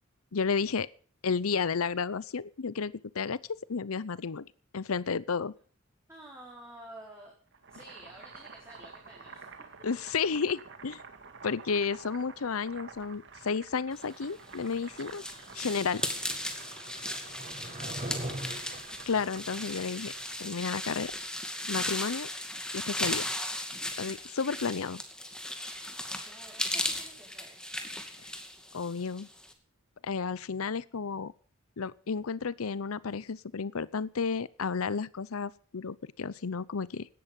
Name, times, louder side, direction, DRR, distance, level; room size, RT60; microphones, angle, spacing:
voice 1, 0.3-0.9 1.2-3.4 3.7-4.5 4.7-5.5 9.8-11.0 11.4-15.2 15.5-16.0 19.1-20.1 20.4-21.1 21.7-22.3 22.7-23.2 24.0-25.0 28.7-29.3 30.0-31.3 31.8-37.1, left 5 dB, 85° left, 19 dB, 0.7 m, -32 dB
voice 2, 6.1-7.3 7.7-9.7 16.0-16.2 25.9-27.6, right 1 dB, 15° right, -3 dB, 4.7 m, -52 dB
Boiling, 7.5-21.3, right 5 dB, 60° right, 2.1 m, -50 dB
sound 1, 14.4-29.5, left 1 dB, 5° left, 2.4 m, -37 dB
Skateboard, 14.8-20.2, right 1 dB, 40° right, 7.8 m, -43 dB
17.5 x 12.5 x 5.4 m, 0.43 s
head